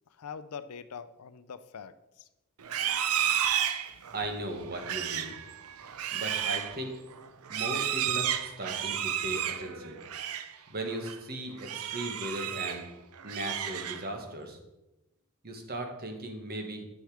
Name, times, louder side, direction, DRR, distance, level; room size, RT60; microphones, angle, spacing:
voice 1, 0.1-2.3, left 6 dB, 85° left, 13 dB, 0.5 m, -43 dB
Livestock farm animals working animals, 2.6-10.5 10.9-11.2 11.6-12.9 13.2-14.2, right 10 dB, 75° right, 0.6 m, -32 dB
voice 2, 4.1-5.4 6.1-6.9 7.5-10.0 10.7-12.9 13.2-14.6 15.4-16.8, right 1 dB, 45° right, 4 dB, 1.5 m, -37 dB
9.1 x 6.4 x 4.9 m, 0.98 s
head